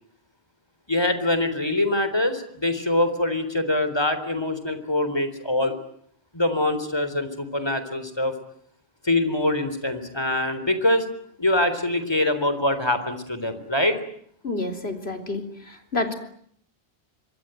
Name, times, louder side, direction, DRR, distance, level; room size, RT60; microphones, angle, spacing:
voice 1, 0.9-5.7 6.3-8.3 9.0-11.1 11.4-14.0, left 1 dB, 25° left, 11 dB, 3.8 m, -24 dB
voice 2, 14.4-15.4 15.9-16.1, left 2 dB, 75° left, 6 dB, 4.0 m, -28 dB
26.0 x 24.0 x 9.1 m, 0.66 s
omnidirectional pair, 1.1 m